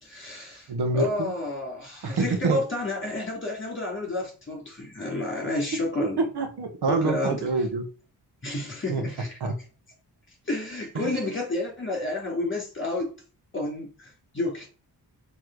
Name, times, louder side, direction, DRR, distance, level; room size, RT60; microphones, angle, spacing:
voice 1, 0.0-6.2 6.9-7.5 8.4-9.4 10.5-13.1 13.5-14.7, left 2 dB, 30° left, 3.3 m, -30 dB
voice 2, 0.7-1.3 2.0-2.6 6.2-7.9 8.9-9.0 9.4-9.5 10.9-11.1, right 3 dB, 75° right, 1.3 m, -26 dB
6.3 x 3.4 x 4.9 m
cardioid pair, 85°, 40 cm